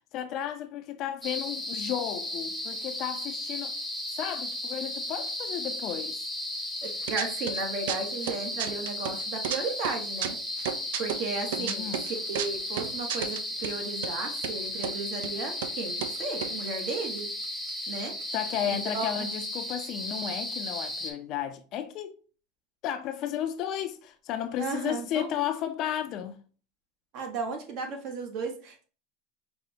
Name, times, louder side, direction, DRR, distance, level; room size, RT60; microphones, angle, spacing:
voice 1, 0.1-3.7 4.1-6.1 11.6-12.1 18.3-22.2 22.8-26.4, left 10 dB, 50° left, 0.4 m, -33 dB
sound 1, 1.2-21.1, left 1 dB, ahead, 0.7 m, -35 dB
voice 2, 6.8-10.4 11.0-11.9 12.3-17.3 17.9-18.2 18.7-19.3 24.6-25.3 27.1-28.8, right 4 dB, 60° right, 0.9 m, -35 dB
sound 2, 6.8-7.6 7.9-9.6 9.8-13.8 14.0-14.1 14.4-15.0 15.2-15.3 15.6-17.7 18.0-18.1 18.2-18.6, right 9 dB, 80° right, 0.3 m, -33 dB
5.1 x 2.0 x 2.7 m
supercardioid pair, 115°, 0 cm